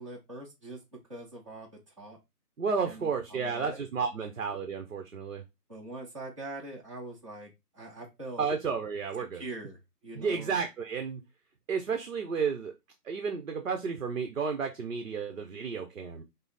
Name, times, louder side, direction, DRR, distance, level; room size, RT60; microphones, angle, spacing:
voice 1, 0.0-2.2 2.9-3.8 4.2-4.3 5.7-8.5 9.2-10.6, right 2 dB, 20° right, 0.9 m, -43 dB
voice 2, 2.6-5.4 8.4-9.4 10.2-11.2 11.7-12.7 13.0-16.2, right 5 dB, 55° right, 0.8 m, -32 dB
5.4 x 2.0 x 4.0 m
hypercardioid pair, 175°, 47 cm